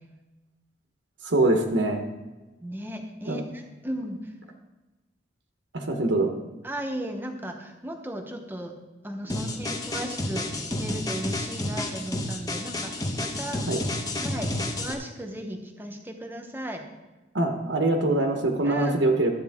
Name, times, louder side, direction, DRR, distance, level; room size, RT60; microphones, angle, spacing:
voice 1, 1.2-2.0 3.3-3.4 5.7-6.3 13.7-13.8 17.3-19.3, right 2 dB, 80° right, 4 dB, 1.1 m, -23 dB
voice 2, 2.6-4.3 6.6-8.7 9.0-13.6 14.2-16.8 18.6-19.0, equal, 10° right, 4 dB, 1.0 m, -36 dB
sound 1, 9.3-14.9, left 1 dB, 20° left, 1.0 m, -30 dB
12.5 x 8.4 x 3.6 m, 1.1 s
head